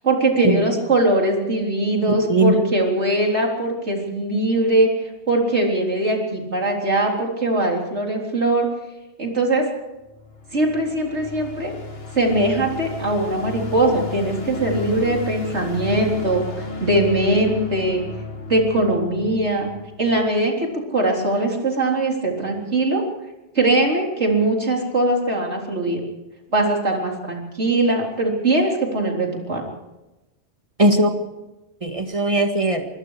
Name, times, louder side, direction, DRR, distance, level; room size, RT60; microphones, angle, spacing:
voice 1, 0.0-8.7 9.2-9.7 10.5-11.7 12.1-18.0 18.5-19.7 20.0-23.0 23.5-26.0 26.5-29.6, right 2 dB, 85° right, 0 dB, 4.2 m, -21 dB
voice 2, 2.3-2.7 30.8-31.1 31.8-32.9, right 2 dB, 30° right, 5 dB, 1.9 m, -19 dB
sound 1, 10.0-20.3, left 3 dB, 60° left, 2.2 m, -33 dB
24.5 x 21.5 x 4.9 m, 1.0 s
omnidirectional pair, 1.1 m